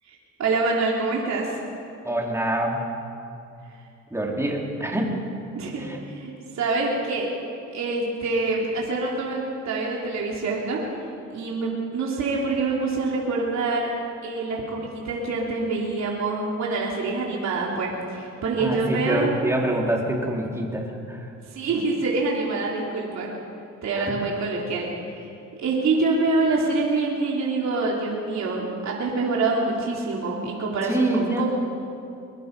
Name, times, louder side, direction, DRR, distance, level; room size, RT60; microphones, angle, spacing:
voice 1, 0.1-1.6 5.5-7.3 7.7-9.4 9.6-10.8 11.3-13.9 14.2-19.3 21.5-23.3 23.8-24.9 25.2-25.3 25.6-31.5, right 3 dB, 65° right, -3 dB, 3.4 m, -26 dB
voice 2, 2.0-2.8 4.1-5.2 5.6-6.1 18.6-21.3 24.0-24.2 30.8-31.5, right 1 dB, 10° right, -1 dB, 4.0 m, -26 dB
22.5 x 21.5 x 5.5 m, 2.6 s
cardioid pair, 90°, 30 cm